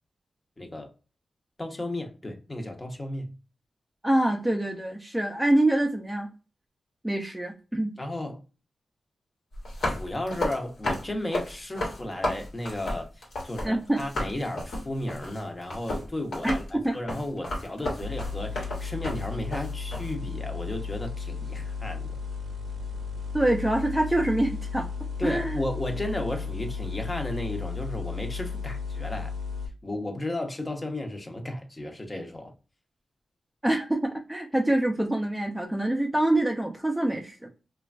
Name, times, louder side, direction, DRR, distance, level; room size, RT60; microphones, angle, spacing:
voice 1, 0.6-0.9 1.6-3.3 8.0-8.4 9.8-22.2 25.2-29.3 29.8-32.5, left 1 dB, 25° left, 0.7 m, -34 dB
voice 2, 4.0-6.3 7.0-7.9 13.6-14.0 16.4-16.5 16.8-17.0 23.3-24.9 25.2-25.6 33.6-37.5, right 1 dB, 5° right, 0.4 m, -25 dB
sound 1, 9.5-13.7 14.0-20.1, left 1 dB, 85° left, 1.1 m, -32 dB
sound 2, 18.0-29.7, left 5 dB, 75° right, 0.5 m, -34 dB
3.1 x 2.2 x 2.4 m
cardioid pair, 80°, 0 cm